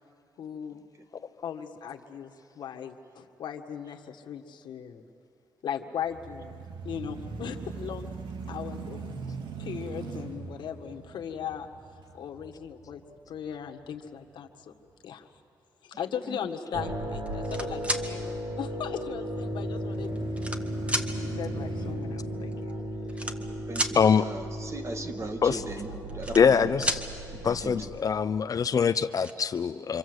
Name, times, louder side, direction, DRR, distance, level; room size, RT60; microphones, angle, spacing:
voice 1, 0.4-0.8 1.4-5.0 5.6-8.1 8.5-9.0 9.6-11.7 12.1-13.0 13.3-14.7 15.0-15.3 15.8-20.1 20.9-22.7, left 8 dB, 75° left, 4 dB, 1.7 m, -38 dB
sound 1, 6.0-14.1 14.6-14.7 19.2-23.7, right 4 dB, 80° right, 2.0 m, -41 dB
sound 2, 16.7-28.0, equal, 60° right, 4.6 m, -35 dB
sound 3, 17.3-18.0 19.0-19.1 19.9-20.6 20.9-21.1 22.2-22.3 22.5-22.7 23.1-24.0 25.8-26.6 26.8-27.0 28.5-28.6 28.9-29.3, right 1 dB, 15° right, 2.0 m, -31 dB
voice 2, 23.4-26.7 27.4-27.8, right 2 dB, 40° right, 6 dB, 2.2 m, -39 dB
voice 3, 23.9-24.3 25.4-25.6 26.4-27.0 27.4-30.0, left 6 dB, 50° left, 12 dB, 0.6 m, -23 dB
26.5 x 26.0 x 8.0 m, 2.4 s
cardioid pair, 75°, 8 cm